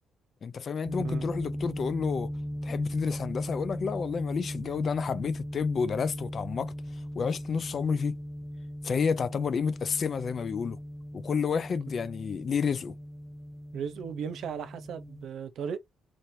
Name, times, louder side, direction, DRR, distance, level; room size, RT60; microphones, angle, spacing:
voice 1, 0.4-2.3 2.6-6.7 7.2-8.2 8.8-10.8 11.1-13.0, left 6 dB, 50° left, 0.4 m, -30 dB
sound 1, 0.8-15.3, equal, 5° right, 0.8 m, -38 dB
voice 2, 13.7-15.8, right 7 dB, 70° right, 0.8 m, -36 dB
4.3 x 3.0 x 2.7 m
cardioid pair, 90°, 0 cm